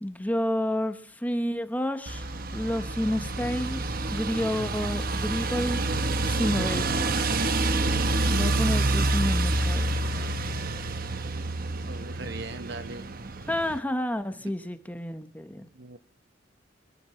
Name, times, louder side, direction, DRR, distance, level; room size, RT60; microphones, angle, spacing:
voice 1, 0.0-3.8 4.1-7.1 8.3-9.9 13.5-15.7, left 1 dB, 10° left, 9 dB, 1.1 m, -30 dB
sound 1, 2.1-13.8, right 2 dB, 50° right, 1.0 m, -28 dB
voice 2, 11.8-13.1 14.4-14.5 15.7-16.0, right 3 dB, 70° right, 10 dB, 1.2 m, -39 dB
25.0 x 12.5 x 3.1 m, 0.43 s
head